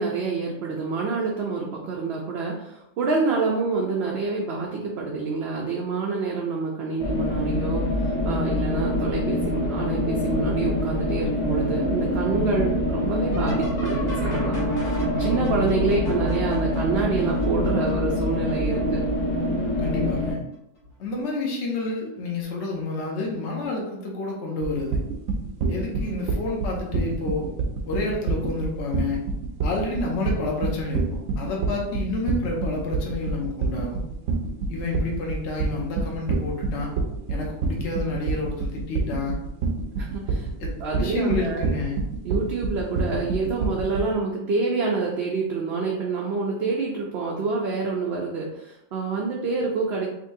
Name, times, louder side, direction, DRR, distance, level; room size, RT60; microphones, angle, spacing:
voice 1, 0.0-7.8 8.2-19.0 40.0-40.5 40.8-41.7 42.2-50.1, right 4 dB, 60° right, -2 dB, 0.7 m, -27 dB
sound 1, 7.0-20.3, left 1 dB, 30° left, 0.7 m, -25 dB
sound 2, 11.5-19.2 19.8-20.4 20.8-21.5 22.7-22.8 23.6-23.9 26.0-26.2 28.5-28.6, equal, 80° left, 1.7 m, -35 dB
voice 2, 19.8-20.4 21.0-25.0 25.7-27.5 27.9-29.2 29.6-34.0 34.7-36.9 37.3-39.4 40.6-40.7 41.0-42.0, left 2 dB, 60° left, -1 dB, 1.0 m, -29 dB
sound 3, 24.6-44.1, right 4 dB, 85° right, 1.0 m, -26 dB
3.8 x 2.9 x 2.6 m, 0.83 s
omnidirectional pair, 1.3 m